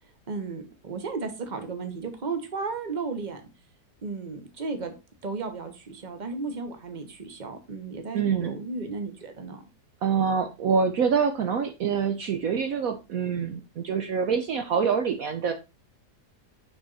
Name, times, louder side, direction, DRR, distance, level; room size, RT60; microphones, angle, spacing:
voice 1, 0.3-3.4 4.0-4.9 5.2-9.6, right 4 dB, 30° right, 7 dB, 1.2 m, -34 dB
voice 2, 8.1-8.5 10.0-15.5, right 6 dB, 65° right, 7 dB, 1.1 m, -25 dB
6.2 x 6.0 x 4.0 m, 0.28 s
omnidirectional pair, 1.7 m